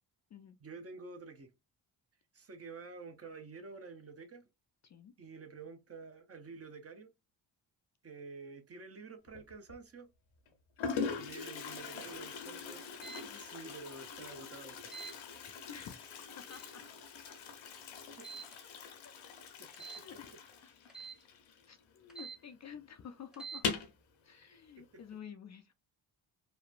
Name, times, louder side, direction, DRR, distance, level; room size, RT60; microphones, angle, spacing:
voice 1, 0.6-1.5 2.3-4.5 5.2-7.1 8.0-10.1 11.2-12.8 13.4-15.2 18.2-18.3 19.6-19.7 24.8-24.9, right 4 dB, 30° right, 0.7 m, -49 dB
Toilet flush, 9.3-9.7 10.5-10.6 10.8-22.1 22.3-22.4 22.7-22.8 23.5-24.0, left 5 dB, 85° left, 0.8 m, -42 dB
sound 1, 12.9-13.2 14.9-15.2 16.4-16.7 18.2-18.5 19.7-20.1 20.9-21.2 22.1-22.4 23.3-23.6, right 5 dB, ahead, 0.8 m, -47 dB
voice 2, 15.7-16.8 17.3-17.4 19.0-19.1 19.8-20.9 21.7-23.7 24.2-25.7, left 8 dB, 40° left, 0.4 m, -51 dB
3.0 x 2.1 x 2.4 m
cardioid pair, 70°, 46 cm